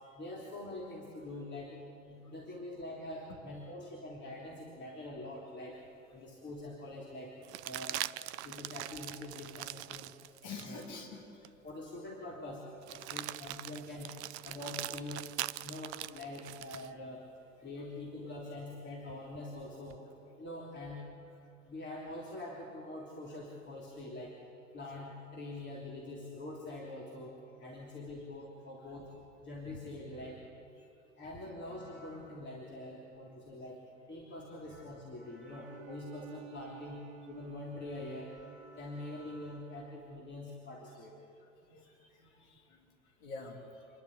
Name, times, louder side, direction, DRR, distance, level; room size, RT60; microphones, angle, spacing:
voice 1, 0.1-5.8 6.1-7.4 7.6-8.0 8.4-10.1 10.6-10.8 11.6-14.1 14.4-15.3 15.6-17.2 17.6-20.0 20.4-21.3 21.7-24.4 24.7-29.1 29.4-30.5 31.2-33.8 34.1-41.2, left 1 dB, 30° left, -3 dB, 3.3 m, -44 dB
sound 1, 5.9-6.0 7.4-10.9 11.4-11.6 12.8-16.9 19.1-20.0, right 15 dB, 60° right, 0.6 m, -42 dB
voice 2, 10.4-11.2 30.8-30.9 41.7-42.7 43.2-43.6, left 4 dB, 60° left, 1 dB, 3.1 m, -46 dB
Bowed string instrument, 35.5-40.2, right 15 dB, 35° right, 1.5 m, -54 dB
28.0 x 11.5 x 8.4 m, 2.7 s
figure-of-eight pair, 70°, 38 cm